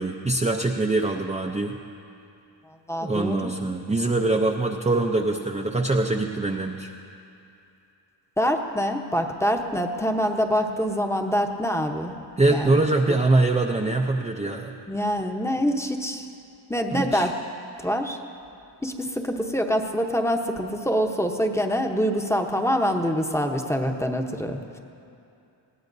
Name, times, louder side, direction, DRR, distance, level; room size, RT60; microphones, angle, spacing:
voice 1, 0.0-1.7 3.0-6.9 12.4-14.7 16.9-17.3, right 2 dB, 15° right, 1 dB, 0.5 m, -23 dB
voice 2, 2.9-3.5 8.4-12.2 12.5-12.8 13.1-13.2 14.9-16.3 16.7-17.3 17.8-18.2 18.8-24.8, equal, 5° left, 3 dB, 0.9 m, -25 dB
20.5 x 16.5 x 2.7 m, 2.6 s
cardioid pair, 95°, 48 cm